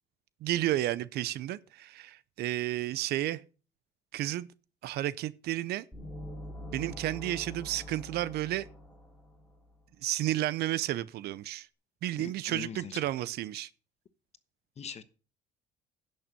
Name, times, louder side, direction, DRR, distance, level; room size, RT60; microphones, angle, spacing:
voice 1, 0.4-3.4 4.1-4.5 4.8-5.9 6.7-8.7 10.0-11.7 12.0-13.7, right 14 dB, 75° right, 0.7 m, -32 dB
sound 1, 5.9-9.7, equal, 5° left, 2.9 m, -44 dB
voice 2, 12.2-12.9 14.8-15.0, left 7 dB, 40° left, 1.1 m, -42 dB
10.5 x 6.5 x 6.7 m
cardioid pair, 110°, 17 cm